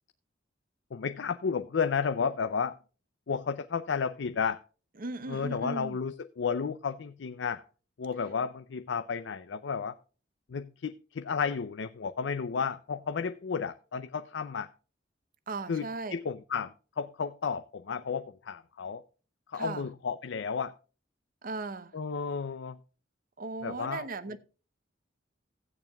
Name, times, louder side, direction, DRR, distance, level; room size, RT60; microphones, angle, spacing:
voice 1, 0.9-2.8 3.3-4.6 5.3-7.6 8.0-10.0 10.5-14.7 15.7-19.0 19.5-20.7 21.9-22.8 23.6-24.1, left 6 dB, 70° left, 0.5 m, -32 dB
voice 2, 5.0-6.0 15.5-16.2 19.5-19.9 21.4-22.0 23.4-24.4, right 3 dB, 50° right, 0.7 m, -37 dB
15.5 x 8.9 x 2.3 m
head